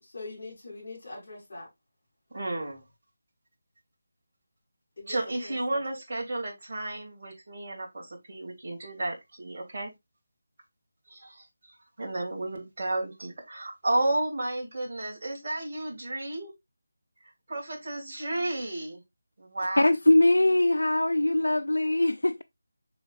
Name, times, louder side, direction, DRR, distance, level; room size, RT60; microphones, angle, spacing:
voice 1, 0.0-1.7 5.0-5.2 5.4-5.5, left 2 dB, 55° left, 4.1 m, -42 dB
voice 2, 2.3-2.8 5.1-9.9 11.6-16.5 17.2-19.0 19.4-19.8, right 2 dB, 40° right, 2.9 m, -32 dB
voice 3, 19.8-22.4, left 1 dB, 70° left, 0.4 m, -22 dB
6.9 x 5.5 x 2.5 m
figure-of-eight pair, 160°, 0 cm